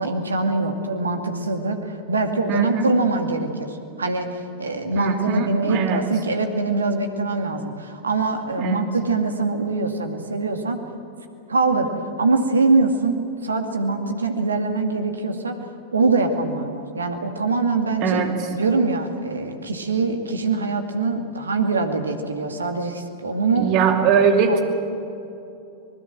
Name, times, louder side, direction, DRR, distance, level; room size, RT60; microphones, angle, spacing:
voice 1, 0.0-10.8 11.5-15.6 15.9-18.2 18.5-24.1 24.5-24.6, right 3 dB, 75° right, 6 dB, 2.2 m, -23 dB
voice 2, 2.5-2.9 4.9-6.0 8.6-8.8 18.0-18.3 23.6-24.6, right 6 dB, 40° right, 4 dB, 2.7 m, -21 dB
24.5 x 20.5 x 7.8 m, 2.7 s
figure-of-eight pair, 90°, 0 cm